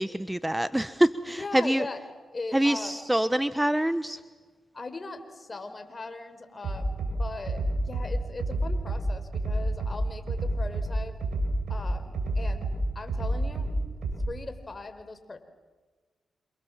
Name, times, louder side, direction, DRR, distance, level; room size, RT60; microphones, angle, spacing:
voice 1, 0.0-1.8 2.5-4.2, right 1 dB, 10° right, 13 dB, 1.1 m, -25 dB
voice 2, 1.3-2.0 2.3-2.9 4.7-11.1 11.7-12.7 12.9-13.7 14.3-15.4, left 3 dB, 35° left, 8 dB, 4.9 m, -39 dB
Bass drum, 6.6-7.1 7.5-8.1 8.4-9.0 9.3-9.9 10.3-10.9 11.2-11.8 12.1-12.8 13.1-13.7 14.0-14.1, right 2 dB, 75° right, 7.5 m, -29 dB
28.0 x 28.0 x 7.5 m, 1.4 s
supercardioid pair, 45°, 0 cm